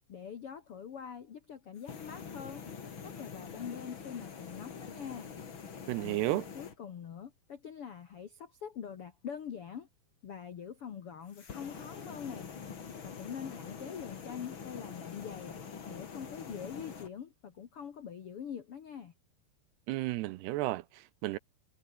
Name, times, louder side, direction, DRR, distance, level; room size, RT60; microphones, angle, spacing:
voice 1, 0.1-2.7 3.0-5.3 6.0-9.9 10.2-12.5 13.0-19.1, left 8 dB, 70° left, 1.3 m, -44 dB
sound 1, 1.8-6.8 11.3-17.1, left 6 dB, 35° left, 2.3 m, -45 dB
voice 2, 5.9-6.5 19.9-21.4, right 18 dB, 80° right, 2.7 m, -33 dB
omnidirectional pair, 5.0 m